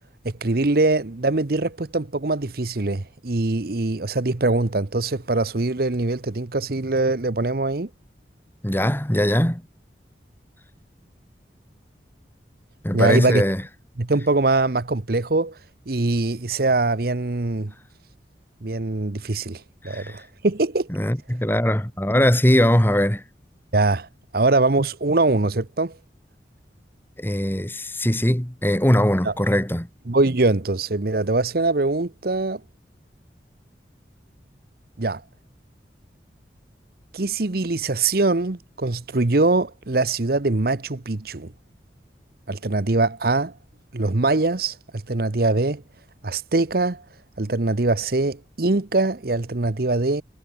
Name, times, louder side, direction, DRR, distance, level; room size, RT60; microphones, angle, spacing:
voice 1, 0.2-7.9 12.9-13.4 14.0-15.6 15.9-17.7 18.6-20.9 23.7-24.1 24.3-26.0 29.2-29.3 30.1-32.6 35.0-35.2 37.1-41.5 42.5-43.5 43.9-45.8 46.2-47.0 47.4-50.2, right 2 dB, 55° right, 1.0 m, -22 dB
voice 2, 8.6-9.6 12.8-13.6 19.9-20.2 20.9-23.2 27.2-29.9, equal, 10° left, 2.0 m, -20 dB
head